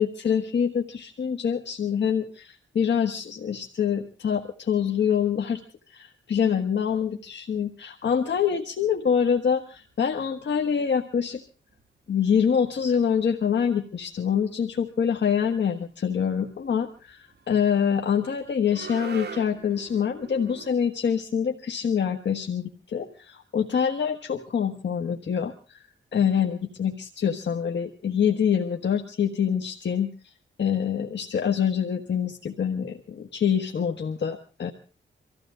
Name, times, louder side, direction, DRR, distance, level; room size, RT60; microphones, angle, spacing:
voice 1, 0.0-5.6 5.9-11.4 12.1-25.8 26.1-30.1 30.6-34.7, left 7 dB, 65° left, 4 dB, 1.5 m, -25 dB
sound 1, 9.0-9.9 10.1-11.0 11.3-11.4 11.7-11.8 12.1-20.7, right 5 dB, 55° right, 2.9 m, -45 dB
25.0 x 15.5 x 3.7 m, 0.36 s
wide cardioid pair, 140°, 20 cm